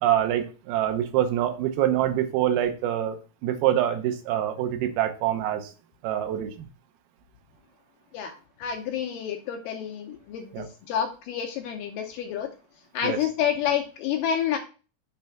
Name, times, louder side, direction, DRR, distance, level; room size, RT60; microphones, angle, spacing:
voice 1, 0.0-5.7 6.0-6.7 10.5-10.7 13.0-13.2, right 11 dB, 80° right, 6 dB, 2.7 m, -25 dB
voice 2, 8.6-12.5 12.9-14.6, left 9 dB, 75° left, 4 dB, 2.0 m, -29 dB
6.6 x 3.3 x 5.7 m, 0.35 s
omnidirectional pair, 4.4 m